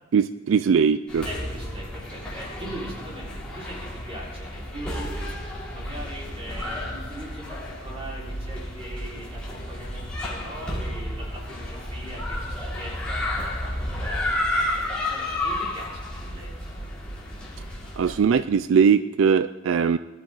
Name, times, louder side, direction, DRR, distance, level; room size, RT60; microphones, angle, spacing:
voice 1, 0.1-1.3 18.0-20.0, right 6 dB, 75° right, 13 dB, 0.4 m, -20 dB
sound 1, 1.1-18.2, left 1 dB, 5° left, 3.5 m, -32 dB
voice 2, 1.2-5.4 5.7-16.5, right 1 dB, 30° right, -4 dB, 4.7 m, -40 dB
20.5 x 12.5 x 4.0 m, 1.2 s
head